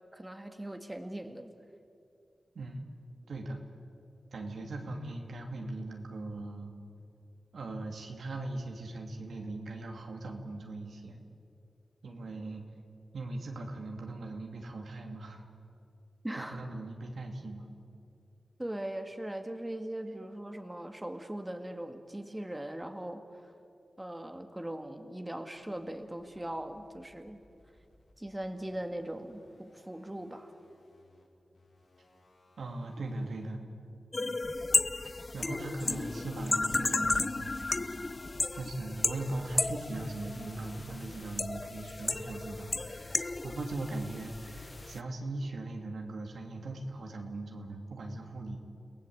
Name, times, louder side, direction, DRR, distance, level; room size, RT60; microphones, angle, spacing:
voice 1, 0.1-1.5 16.2-16.6 18.6-23.5 24.0-27.4 28.2-30.5, right 1 dB, 15° right, 6 dB, 1.9 m, -40 dB
voice 2, 3.3-3.6 4.3-6.7 7.5-11.2 12.0-12.6 13.1-15.5 16.4-17.7 32.6-33.6 35.3-37.3 38.5-48.6, right 2 dB, 85° right, 2 dB, 2.8 m, -39 dB
sound 1, 25.6-33.6, left 1 dB, 85° left, 6.5 m, -65 dB
sound 2, 34.1-45.0, left 2 dB, 40° left, 0.8 m, -33 dB
29.5 x 18.0 x 8.1 m, 2.5 s
wide cardioid pair, 70°, 0 cm